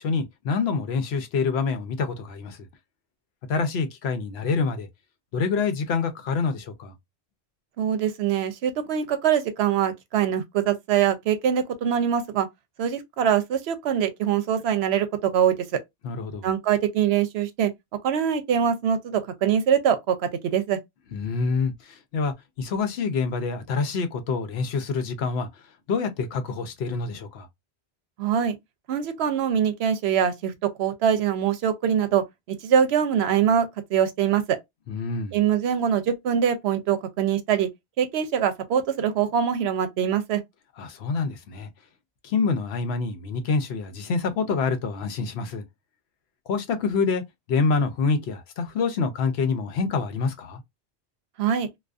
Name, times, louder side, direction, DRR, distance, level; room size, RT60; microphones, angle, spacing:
voice 1, 0.0-2.6 3.5-4.9 5.3-6.9 16.0-16.5 21.1-25.5 25.9-27.5 34.9-35.4 40.8-41.7 42.2-45.6 46.5-47.2 47.5-50.6, left 4 dB, 75° left, 0.8 m, -26 dB
voice 2, 7.8-12.5 12.8-15.6 16.4-17.7 18.0-20.8 28.2-28.5 28.9-30.5 30.8-32.2 32.6-34.6 35.3-37.7 38.0-40.4 51.4-51.7, right 8 dB, 75° right, 0.8 m, -23 dB
2.5 x 2.3 x 2.2 m
omnidirectional pair, 1.1 m